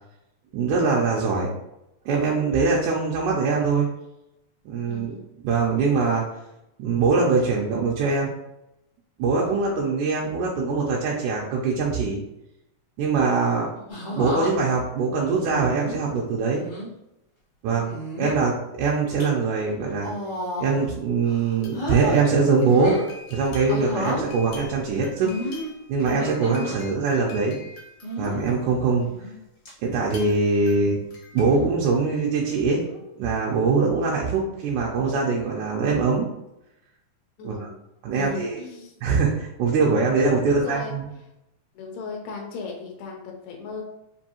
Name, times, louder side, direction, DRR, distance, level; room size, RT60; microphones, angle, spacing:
voice 1, 0.5-1.5 2.1-3.9 4.7-5.2 5.4-6.3 6.8-8.3 9.2-12.2 13.0-13.7 14.1-16.6 17.6-20.1 20.6-23.0 23.3-25.6 25.9-27.6 28.2-29.1 29.8-31.0 31.3-32.9 33.2-36.3 37.4-37.7 38.0-38.6 39.0-41.1, right 4 dB, 85° right, -3 dB, 2.0 m, -23 dB
voice 2, 4.8-5.3 9.4-9.7 13.8-14.0 17.7-18.0 26.4-26.8 37.4-37.8 38.2-39.0 40.5-41.0 41.7-43.8, left 5 dB, 85° left, 0 dB, 2.2 m, -37 dB
sound 1, 13.9-14.5 15.5-16.0 16.6-16.9 17.9-18.4 19.0-19.2 20.0-20.9 21.2-22.2 22.6-23.1 23.7-24.2 25.2-26.8 28.0-28.4 29.0-29.4 29.7-29.8 31.3-31.7 32.8-33.1, equal, 50° left, 0.8 m, -32 dB
sound 2, 21.5-29.0 30.0-31.4, left 4 dB, 70° left, 2.2 m, -45 dB
5.2 x 2.6 x 2.8 m, 0.87 s
omnidirectional pair, 3.4 m